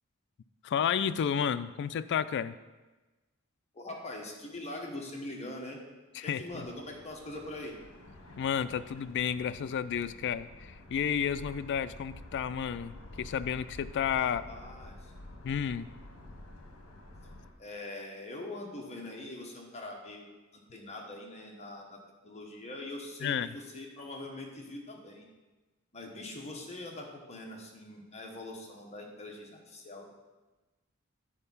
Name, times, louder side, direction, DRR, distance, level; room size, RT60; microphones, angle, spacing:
voice 1, 0.6-2.6 6.1-6.7 8.4-14.4 15.4-15.9 23.2-23.5, left 8 dB, 55° left, 13 dB, 0.3 m, -31 dB
voice 2, 3.7-5.8 6.2-7.7 14.2-15.1 17.6-22.0 22.2-25.3 25.9-30.1, left 1 dB, 30° left, 0 dB, 1.2 m, -43 dB
sound 1, 6.5-17.5, left 1 dB, 75° left, 1.1 m, -49 dB
8.7 x 4.5 x 5.6 m, 1.2 s
head